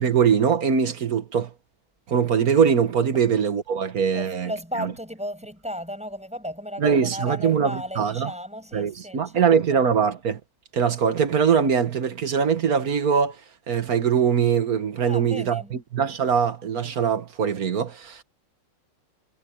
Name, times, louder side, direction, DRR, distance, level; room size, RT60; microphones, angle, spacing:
voice 1, 0.0-1.5 2.1-4.5 4.8-4.9 6.8-8.3 8.7-10.4 10.7-13.4 13.7-18.2, right 7 dB, 45° right, 1.7 m, -22 dB
voice 2, 4.1-9.8 15.0-15.7, equal, 5° right, 6.1 m, -35 dB
omnidirectional pair, 2.4 m